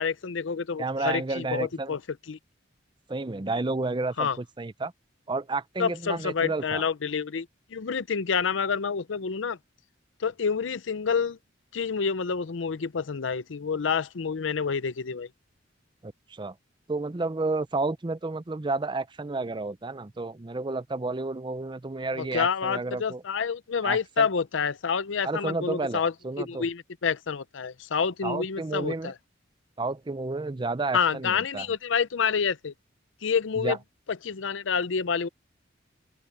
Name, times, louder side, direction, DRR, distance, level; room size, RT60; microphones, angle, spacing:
voice 1, 0.0-2.0 2.3-2.4 4.2-4.4 5.8-7.5 7.7-9.6 10.2-11.4 11.7-15.3 22.2-29.1 30.9-32.7 33.2-33.8 34.2-35.3, left 6 dB, 85° left, 0.6 m, -28 dB
voice 2, 0.8-2.0 3.1-4.9 5.3-6.8 16.0-16.5 16.9-23.2 23.8-24.3 25.2-26.7 28.2-29.1 29.8-31.7 33.6-33.8, right 3 dB, 25° right, 0.6 m, -31 dB
open air
head